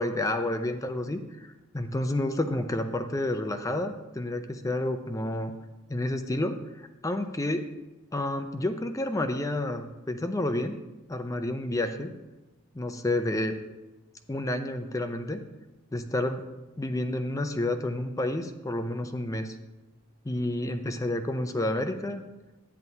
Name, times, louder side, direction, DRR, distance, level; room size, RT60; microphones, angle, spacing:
voice 1, 0.0-5.5 5.9-7.7 8.1-10.8 11.1-12.1 12.7-13.6 14.3-15.4 15.9-16.4 16.8-19.6 20.2-22.2, left 1 dB, 15° left, 7 dB, 0.5 m, -30 dB
10.5 x 9.3 x 2.8 m, 1.0 s
head